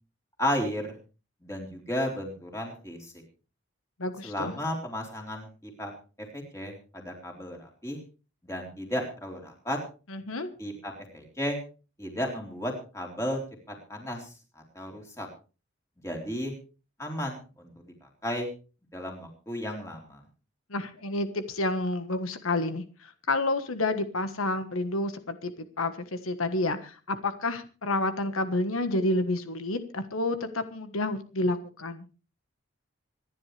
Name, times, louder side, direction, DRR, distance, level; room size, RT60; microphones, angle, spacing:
voice 1, 0.4-1.0 1.4-3.1 4.2-5.9 6.3-8.0 8.4-9.8 10.6-11.6 12.0-13.4 13.7-14.3 14.8-15.3 16.0-16.5 17.0-17.9 18.2-18.5 18.9-20.2, left 1 dB, 15° left, 1 dB, 3.9 m, -33 dB
voice 2, 4.0-4.5 10.1-10.5 20.7-32.1, left 2 dB, 90° left, 9 dB, 1.4 m, -29 dB
25.5 x 10.5 x 3.4 m, 0.35 s
head